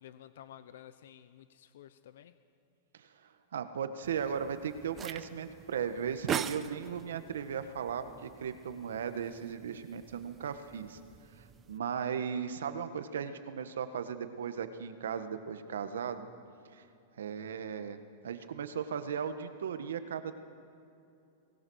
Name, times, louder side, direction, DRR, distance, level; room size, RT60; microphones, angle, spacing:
voice 1, 0.0-2.4, left 11 dB, 75° left, 13 dB, 0.8 m, -52 dB
voice 2, 3.5-11.0 11.4-16.3 16.7-16.8 17.2-20.3, right 7 dB, 90° right, 9 dB, 1.5 m, -37 dB
sound 1, 4.0-11.8, right 8 dB, 20° right, 0.6 m, -43 dB
22.0 x 19.0 x 6.5 m, 2.7 s
supercardioid pair, 145°, 0 cm